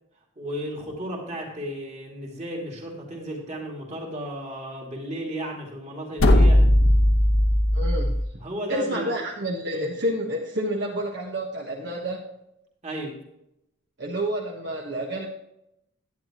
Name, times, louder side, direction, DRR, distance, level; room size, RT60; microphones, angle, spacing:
voice 1, 0.4-6.6 8.4-9.1 9.7-9.9 12.8-13.2, right 1 dB, 30° right, -1 dB, 2.5 m, -34 dB
sound 1, 6.2-8.3, left 1 dB, 75° left, 1.1 m, -18 dB
voice 2, 7.7-8.4 8.7-12.2 14.0-15.3, right 1 dB, 55° right, -2 dB, 1.3 m, -29 dB
11.0 x 9.9 x 2.9 m, 0.82 s
head